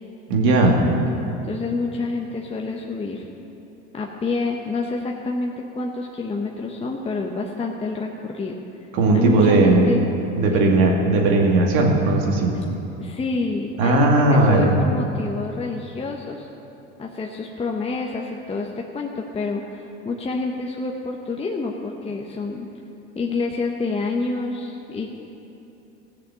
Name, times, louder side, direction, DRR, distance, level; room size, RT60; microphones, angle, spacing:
voice 1, 0.3-0.8 8.9-9.9 10.4-12.5 13.8-14.7, right 2 dB, 65° right, 0 dB, 2.5 m, -17 dB
voice 2, 1.5-3.3 3.9-8.6 9.1-10.1 10.5-10.7 13.0-16.5 17.0-22.7 23.1-25.1, left 3 dB, 20° left, 0 dB, 1.0 m, -28 dB
15.5 x 6.6 x 7.9 m, 2.8 s
supercardioid pair, 95°, 31 cm